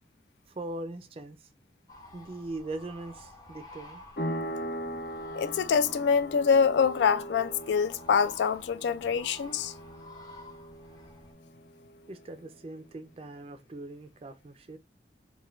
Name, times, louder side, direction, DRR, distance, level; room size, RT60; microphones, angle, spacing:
voice 1, 0.5-1.5 2.1-4.0 12.1-14.8, right 2 dB, 30° right, 0.3 m, -40 dB
sound 1, 1.9-11.3, left 1 dB, 20° left, 0.5 m, -51 dB
sound 2, 4.2-12.5, equal, 65° left, 0.8 m, -40 dB
voice 2, 5.3-9.7, left 6 dB, 80° left, 0.3 m, -25 dB
3.0 x 2.2 x 2.3 m
head